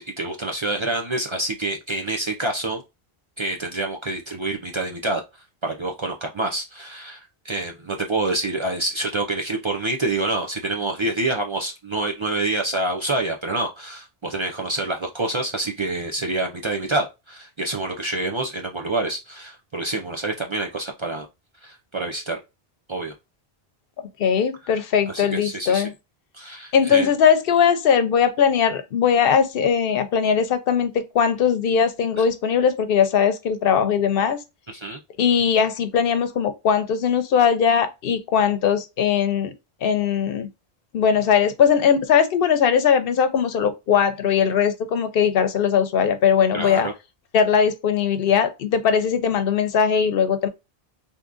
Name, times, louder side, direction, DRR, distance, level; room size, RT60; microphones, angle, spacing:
voice 1, 0.0-2.8 3.4-5.2 5.6-21.3 21.6-22.4 22.9-23.1 25.1-25.9 26.3-27.1 32.2-32.3 34.7-35.0 46.5-46.9, right 2 dB, 40° right, 0.4 m, -27 dB
voice 2, 24.2-25.9 26.7-34.4 35.2-39.5 39.8-40.5 40.9-46.9 47.3-50.5, left 7 dB, 65° left, 0.7 m, -20 dB
3.6 x 2.8 x 2.4 m
omnidirectional pair, 1.1 m